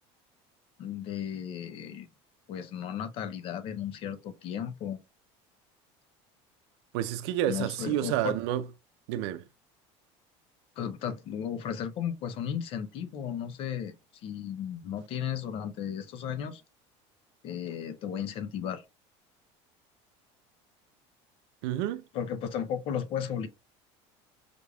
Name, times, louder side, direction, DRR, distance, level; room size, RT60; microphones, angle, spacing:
voice 1, 0.8-2.1 2.5-5.0 7.5-8.4 10.8-13.9 14.2-16.6 17.4-18.8 22.1-23.5, left 8 dB, 45° left, 0.6 m, -34 dB
voice 2, 6.9-8.6 9.1-9.4 21.6-22.0, right 12 dB, 90° right, 0.5 m, -29 dB
5.0 x 3.4 x 2.3 m
cardioid pair, 155°, 13 cm